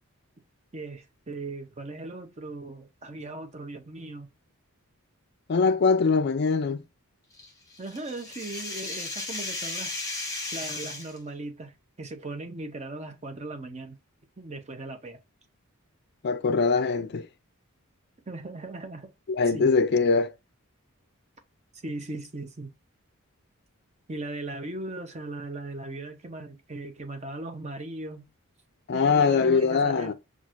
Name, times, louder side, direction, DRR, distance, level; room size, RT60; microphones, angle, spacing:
voice 1, 0.7-4.3 7.8-9.9 10.5-14.0 14.4-15.2 18.3-19.1 19.5-19.7 21.7-22.7 24.1-28.3 28.9-30.1, right 2 dB, 30° right, 0.6 m, -38 dB
voice 2, 5.5-6.8 16.2-17.3 19.3-20.3 28.9-30.1, left 4 dB, 45° left, 0.4 m, -22 dB
sound 1, 7.4-11.2, left 3 dB, 15° left, 1.2 m, -35 dB
5.9 x 2.4 x 2.5 m
head